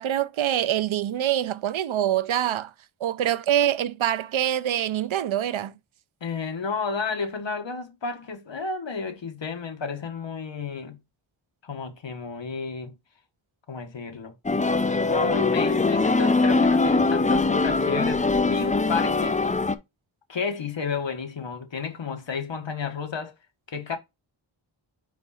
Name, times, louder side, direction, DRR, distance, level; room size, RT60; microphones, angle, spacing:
voice 1, 0.0-2.7 3.0-5.7, right 11 dB, 80° right, 0.6 m, -25 dB
voice 2, 6.2-11.0 11.6-12.9 13.7-14.3 15.1-19.4 20.3-23.3 23.7-24.0, left 5 dB, 65° left, 1.4 m, -32 dB
sound 1, 14.5-19.8, left 3 dB, 15° left, 0.4 m, -22 dB
5.1 x 5.0 x 4.1 m
wide cardioid pair, 100°, 47 cm